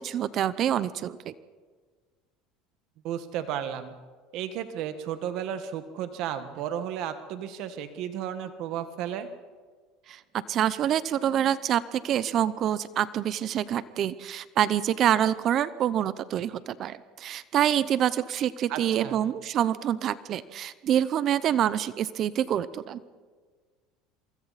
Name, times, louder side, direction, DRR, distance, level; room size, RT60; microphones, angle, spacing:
voice 1, 0.0-1.3 10.1-10.2 10.5-23.0, right 10 dB, 40° right, 16 dB, 0.7 m, -26 dB
voice 2, 3.0-3.9 4.3-9.3 18.7-19.2, right 9 dB, 60° right, 9 dB, 1.5 m, -33 dB
27.5 x 24.5 x 4.2 m, 1.5 s
cardioid pair, 135°, 0 cm